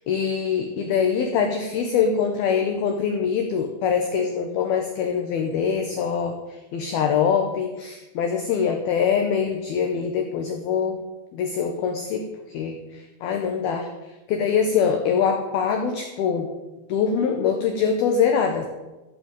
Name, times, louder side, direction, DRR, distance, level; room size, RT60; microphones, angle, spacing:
voice 1, 0.1-6.3 6.7-11.0 11.3-13.9 14.3-16.5 16.9-18.7, left 6 dB, 80° left, 4 dB, 2.2 m, -23 dB
14.5 x 7.4 x 9.0 m, 1.1 s
omnidirectional pair, 5.9 m